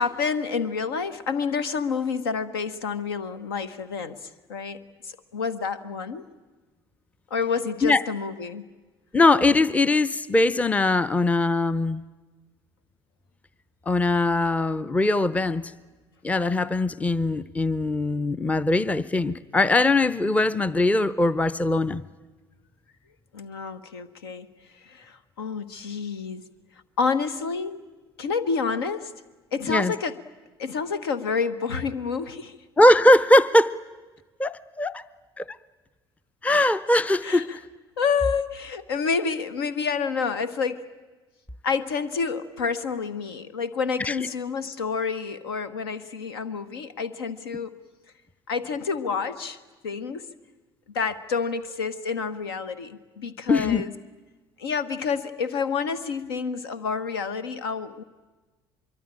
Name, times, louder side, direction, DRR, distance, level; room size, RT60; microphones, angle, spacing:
voice 1, 0.0-4.8 5.0-6.2 7.3-8.6 23.3-24.5 24.8-26.4 27.0-27.8 28.2-29.1 29.5-30.1 30.6-32.5 37.2-37.4 38.0-40.9 41.6-47.7 48.5-49.6 49.8-50.2 50.9-53.9 54.6-58.0, left 5 dB, 70° left, 15 dB, 1.2 m, -28 dB
voice 2, 9.1-12.0 13.9-15.7 16.2-22.0 29.7-29.9 32.8-33.8 34.4-35.0 35.4-35.5 36.4-37.6 44.0-44.2 53.5-53.8, left 2 dB, 10° left, 17 dB, 0.7 m, -21 dB
24.0 x 23.5 x 8.9 m, 1.3 s
figure-of-eight pair, 60°, 13 cm